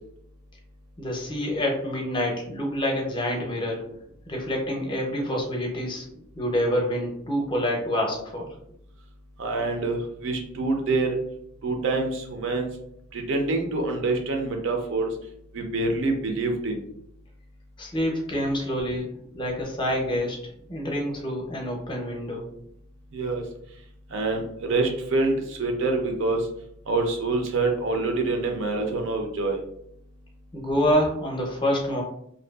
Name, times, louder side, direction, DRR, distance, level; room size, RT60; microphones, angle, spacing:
voice 1, 1.0-3.8 4.3-6.0 6.4-8.5 17.8-19.1 19.3-20.4 20.7-22.4 30.5-32.0, equal, 25° left, -1 dB, 0.5 m, -27 dB
voice 2, 9.4-11.2 11.6-12.7 13.1-15.1 15.5-16.8 23.1-23.4 24.1-26.5 26.9-29.6, right 3 dB, 65° right, 3 dB, 0.5 m, -26 dB
2.6 x 2.3 x 2.2 m, 0.72 s
head